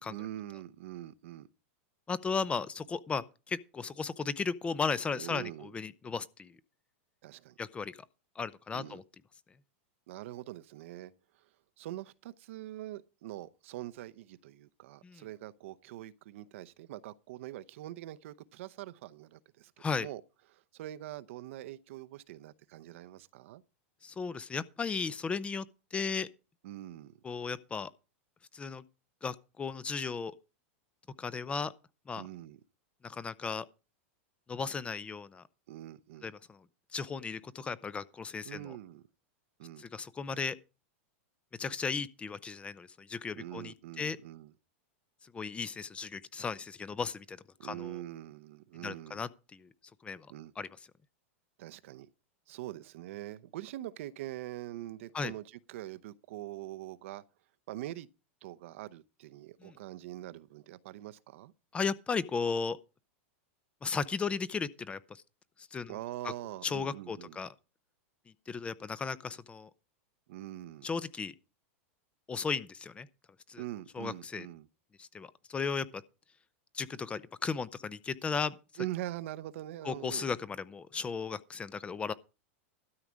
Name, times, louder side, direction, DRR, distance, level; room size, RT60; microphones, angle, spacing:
voice 1, 0.1-1.5 5.1-5.7 7.2-7.6 8.7-9.0 10.1-11.1 11.8-19.7 20.0-20.2 20.5-23.6 26.6-27.1 32.2-32.6 35.7-36.3 38.5-39.0 39.6-39.9 43.3-44.5 47.6-49.2 50.3-50.5 51.6-52.1 52.5-57.2 57.7-58.1 58.4-61.5 65.9-67.4 70.3-70.9 73.5-74.7 78.8-80.3, right 14 dB, 70° right, 0.7 m, -43 dB
voice 2, 2.1-6.5 7.6-8.0 8.4-9.0 15.0-15.3 19.8-20.1 24.0-25.7 25.9-26.3 27.2-27.9 28.5-28.8 29.2-30.3 31.2-31.7 32.1-32.2 33.0-33.7 34.5-35.4 36.2-36.6 36.9-38.7 39.8-40.6 41.6-44.2 45.2-48.0 48.8-49.7 50.0-50.3 50.6-50.7 55.1-55.3 59.6-59.8 61.7-62.8 63.8-65.2 65.7-66.0 66.2-66.3 66.6-67.5 68.5-69.7 70.8-71.3 72.3-73.1 73.5-73.6 73.9-74.5 75.0-76.0 76.7-78.9 79.8-82.1, left 5 dB, 15° left, 0.6 m, -35 dB
13.0 x 4.9 x 8.5 m
supercardioid pair, 130°, 7 cm